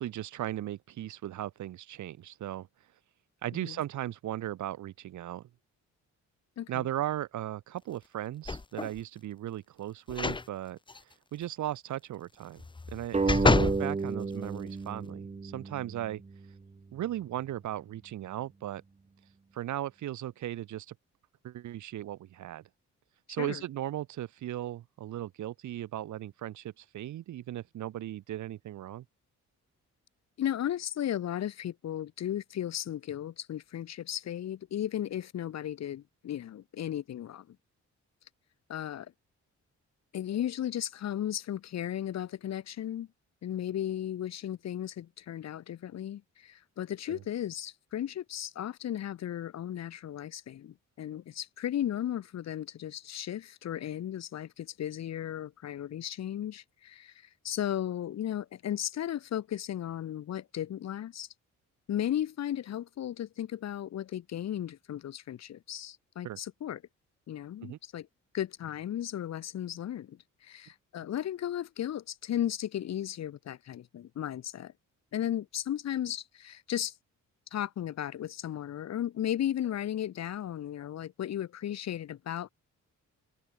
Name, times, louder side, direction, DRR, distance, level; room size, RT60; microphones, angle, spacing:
voice 1, 0.0-2.7 3.4-5.4 6.7-10.8 11.3-12.6 12.9-16.2 16.9-18.8 19.5-20.9 21.4-22.6 23.3-29.0 47.1-47.2 66.2-66.4 67.6-67.8, right 13 dB, 80° right, 1.4 m, -37 dB
voice 2, 6.6-6.9 13.5-13.7 23.4-23.6 30.4-37.6 38.7-39.1 40.1-43.1 43.4-61.3 61.9-66.8 67.3-68.1 68.3-74.7 75.1-76.9 77.5-82.5, left 11 dB, 65° left, 1.8 m, -35 dB
sound 1, 8.4-9.0 10.1-10.5 10.9-11.0 12.6-13.8 14.4-14.5, left 3 dB, 15° left, 1.5 m, -28 dB
sound 2, 13.1-16.3, right 4 dB, 20° right, 2.8 m, -31 dB
wide cardioid pair, 155°, 29 cm